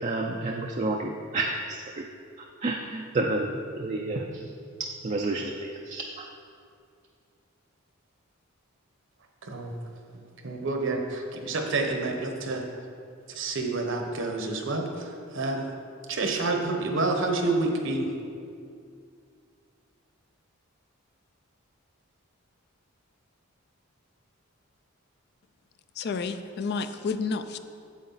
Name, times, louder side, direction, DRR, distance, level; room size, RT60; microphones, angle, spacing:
voice 1, 0.0-2.1 2.4-4.5 4.8-6.3, right 2 dB, 30° right, 1 dB, 0.4 m, -30 dB
voice 2, 10.4-12.7 13.3-14.9 15.3-15.6 16.1-18.1, right 3 dB, 60° right, 3 dB, 1.0 m, -28 dB
voice 3, 26.0-27.6, left 4 dB, 50° left, 10 dB, 0.4 m, -30 dB
8.3 x 7.7 x 4.0 m, 2.3 s
head